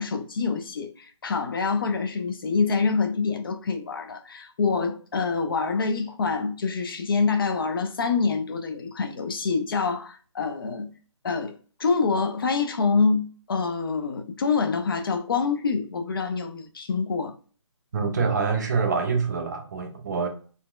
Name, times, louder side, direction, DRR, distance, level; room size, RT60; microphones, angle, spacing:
voice 1, 0.0-10.9 11.2-17.4, left 4 dB, 45° left, 0.4 m, -26 dB
voice 2, 17.9-20.3, right 5 dB, 35° right, 0.5 m, -25 dB
3.8 x 2.1 x 2.2 m
figure-of-eight pair, 155°, 16 cm